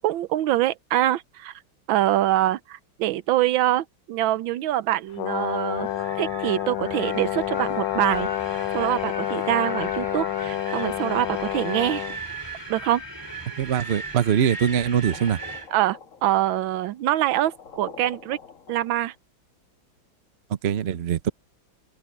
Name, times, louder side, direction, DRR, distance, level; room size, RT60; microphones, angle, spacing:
voice 1, 0.0-1.5 1.9-5.9 6.2-8.3 8.7-12.0 12.7-13.0 15.7-18.4 18.7-19.1, right 13 dB, 80° right, 1.4 m, -24 dB
Brass instrument, 5.2-12.2, left 15 dB, 75° left, 1.3 m, -29 dB
Wind, 5.8-15.7, right 1 dB, 10° right, 4.6 m, -37 dB
voice 2, 13.6-15.4 20.6-21.3, right 8 dB, 45° right, 0.8 m, -22 dB
sound 1, 14.6-19.2, left 5 dB, 45° left, 1.7 m, -46 dB
open air
omnidirectional pair, 2.1 m